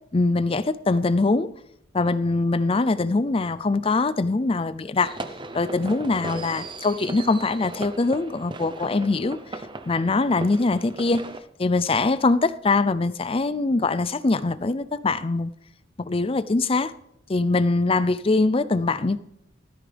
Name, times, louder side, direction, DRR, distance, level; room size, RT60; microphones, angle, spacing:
voice 1, 0.1-1.5 1.9-5.2 5.5-9.4 9.9-11.2 11.6-15.5 16.0-16.9 17.3-19.2, left 3 dB, 30° left, 0.5 m, -23 dB
sound 1, 5.0-11.4, right 2 dB, 25° right, 0.7 m, -37 dB
16.5 x 14.0 x 3.4 m
head